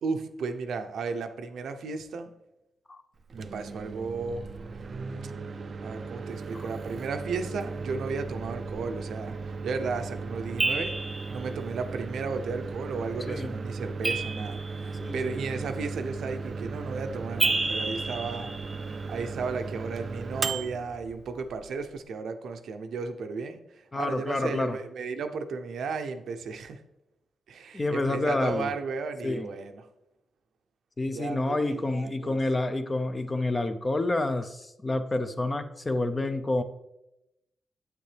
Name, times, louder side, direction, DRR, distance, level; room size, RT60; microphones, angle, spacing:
voice 1, 0.0-2.3 3.3-4.4 5.2-5.3 5.8-11.0 11.3-18.5 18.9-23.6 24.0-26.8 27.5-29.8 31.1-32.4, right 4 dB, 85° right, 7 dB, 0.7 m, -34 dB
Microwave oven, 3.2-22.0, right 4 dB, 45° right, 0.4 m, -37 dB
sound 1, 10.6-11.4 14.0-15.1 17.4-19.1, right 2 dB, 20° right, 0.9 m, -30 dB
voice 2, 13.3-13.6 15.0-15.4 23.9-24.8 27.7-28.7 29.2-29.5 31.0-36.6, left 2 dB, 20° left, 9 dB, 0.6 m, -28 dB
9.1 x 8.2 x 3.4 m, 0.88 s
wide cardioid pair, 130°, 0 cm